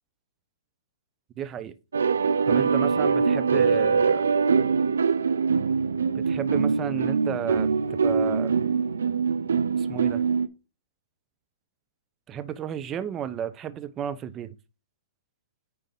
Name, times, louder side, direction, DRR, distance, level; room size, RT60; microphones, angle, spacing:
voice 1, 1.4-1.7 2.5-4.2 6.1-7.7 8.0-8.6 9.8-10.2 12.3-14.6, right 9 dB, 25° right, 0.8 m, -32 dB
sound 1, 1.9-10.5, right 5 dB, 80° right, 0.7 m, -23 dB
9.2 x 3.7 x 5.3 m
hypercardioid pair, 125°, 0 cm